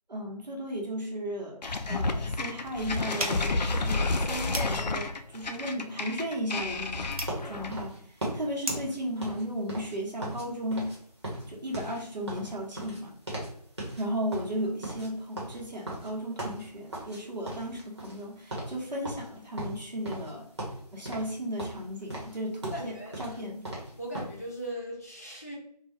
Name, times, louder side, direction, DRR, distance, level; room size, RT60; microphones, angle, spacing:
voice 1, 0.1-1.6 1.9-7.2 7.4-8.0 8.3-11.0 11.5-13.1 14.0-20.5 20.9-23.7, equal, 85° right, -1 dB, 1.0 m, -35 dB
sound 1, 1.6-7.9, left 3 dB, 85° left, 0.4 m, -30 dB
sound 2, 3.1-9.0, right 2 dB, 60° right, 0.6 m, -40 dB
sound 3, 7.3-10.4 10.7-11.0 11.2-13.5 13.8-14.0 14.3-17.2 17.4-18.2 18.5-18.7 19.0-20.3 20.6-21.3 21.6-24.4, right 1 dB, 40° right, 1.0 m, -38 dB
voice 2, 22.7-23.4 24.0-25.5, right 1 dB, 25° left, -4 dB, 0.5 m, -38 dB
2.3 x 2.2 x 2.8 m, 0.66 s
figure-of-eight pair, 165°, 21 cm